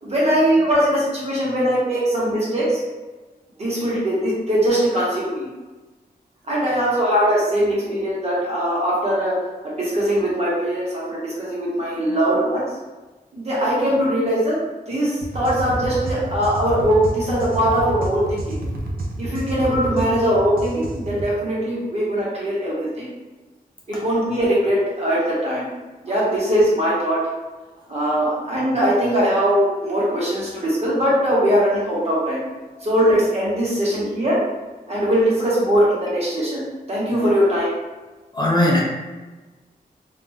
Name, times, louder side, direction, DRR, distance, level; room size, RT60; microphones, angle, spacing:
voice 1, 0.0-2.8 3.6-5.5 6.5-9.3 9.6-12.6 13.3-18.6 19.2-23.1 23.9-25.7 26.0-27.2 27.9-32.4 32.8-34.4 34.9-37.7, equal, 40° right, -7 dB, 1.0 m, -21 dB
sound 1, 15.2-21.3, right 1 dB, 65° right, 0.5 m, -29 dB
voice 2, 38.3-38.8, left 1 dB, 25° left, -3 dB, 0.4 m, -21 dB
2.4 x 2.1 x 3.3 m, 1.2 s
wide cardioid pair, 150°, 16 cm